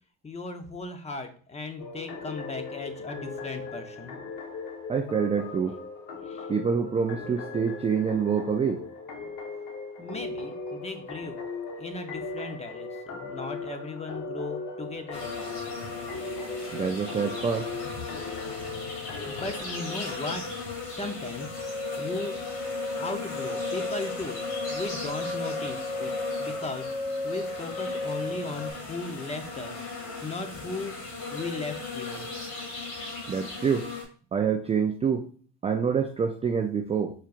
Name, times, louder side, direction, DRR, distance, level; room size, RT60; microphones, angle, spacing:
voice 1, 0.2-4.2 6.3-6.5 10.0-11.4 11.8-15.3 19.3-20.4 20.9-21.6 22.0-22.4 23.0-26.1 26.4-26.9 27.2-29.9 30.2-30.9 31.3-32.3, left 3 dB, 20° left, 6 dB, 0.8 m, -37 dB
sound 1, 1.8-20.1, left 4 dB, 55° left, 1.2 m, -38 dB
voice 2, 4.9-5.7 6.5-8.8 16.7-17.7 33.3-33.9 34.3-35.3 35.6-37.1, right 6 dB, 20° right, 4 dB, 0.4 m, -26 dB
sound 2, 15.1-34.0, left 4 dB, 80° left, 2.2 m, -37 dB
sound 3, 21.4-28.7, left 2 dB, 40° left, 2.0 m, -34 dB
4.8 x 4.4 x 2.5 m, 0.43 s
supercardioid pair, 90°, 36 cm